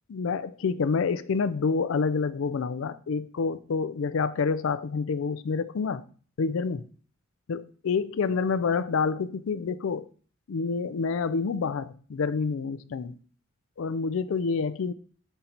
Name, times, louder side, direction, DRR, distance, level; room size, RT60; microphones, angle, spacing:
voice 1, 0.1-6.0 6.4-6.8 7.5-10.1 10.5-13.2 13.8-14.9, left 5 dB, 65° left, 0.4 m, -28 dB
5.6 x 3.9 x 4.3 m
head